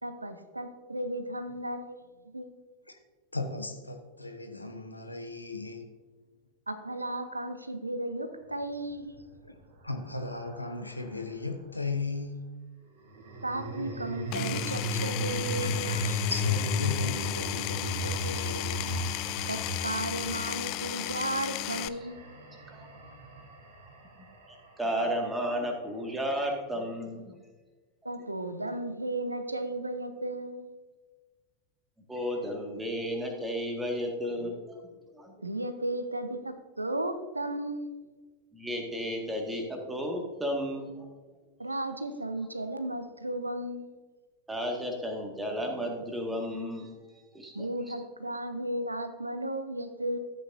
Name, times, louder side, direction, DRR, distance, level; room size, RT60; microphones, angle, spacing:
voice 1, 0.0-2.0 2.3-2.5 6.7-9.2 13.4-15.7 16.1-16.2 19.5-22.2 28.0-30.7 35.4-38.0 41.6-43.9 47.5-50.2, right 1 dB, 85° right, 9 dB, 0.7 m, -34 dB
voice 2, 3.3-5.9 9.4-9.5 9.8-12.5 15.6-19.1, left 3 dB, 85° left, 6 dB, 1.0 m, -37 dB
sound 1, 8.9-11.4 13.0-25.3, left 1 dB, 55° right, 2.3 m, -35 dB
Power tool, 14.3-21.9, left 16 dB, 40° left, 0.3 m, -34 dB
voice 3, 24.8-27.3 32.1-34.8 35.1-35.3 38.5-41.1 44.5-46.9 47.3-47.9, equal, 10° right, 1 dB, 1.9 m, -33 dB
13.5 x 8.6 x 2.7 m, 1.3 s
figure-of-eight pair, 90°, 0 cm